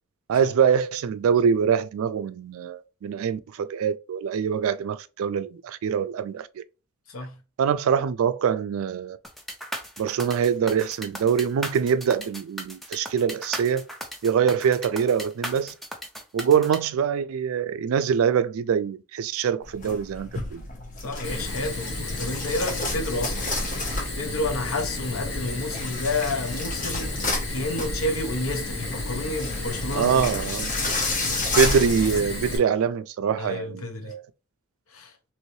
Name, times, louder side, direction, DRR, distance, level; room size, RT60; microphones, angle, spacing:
voice 1, 0.3-6.6 7.6-9.2 10.0-13.9 14.2-15.7 16.3-20.7 29.9-30.7 31.5-34.2, right 7 dB, 75° right, 0.3 m, -24 dB
voice 2, 7.1-7.4 21.0-23.5 23.8-27.2 27.5-30.2 33.4-34.1 34.9-35.1, left 2 dB, 75° left, 0.7 m, -30 dB
sound 1, 9.2-16.8, equal, ahead, 0.4 m, -36 dB
sound 2, 19.6-32.2, left 2 dB, 35° left, 0.8 m, -32 dB
Fire, 21.2-32.6, left 2 dB, 55° left, 1.0 m, -32 dB
3.1 x 3.0 x 2.7 m
head